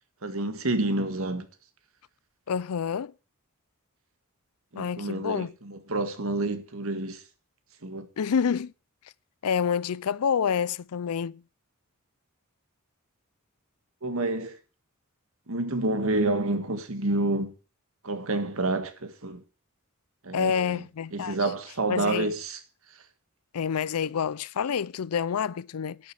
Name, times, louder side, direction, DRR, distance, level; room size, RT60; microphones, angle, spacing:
voice 1, 0.2-1.5 4.7-7.2 7.8-8.1 14.0-14.6 15.5-17.5 18.0-19.4 20.2-20.8 21.1-22.6, right 2 dB, 70° right, 1.7 m, -28 dB
voice 2, 2.5-3.1 4.8-5.6 8.2-8.7 9.4-11.3 20.3-21.4 21.9-22.3 23.5-26.1, left 7 dB, 90° left, 0.5 m, -28 dB
12.0 x 6.5 x 5.9 m
head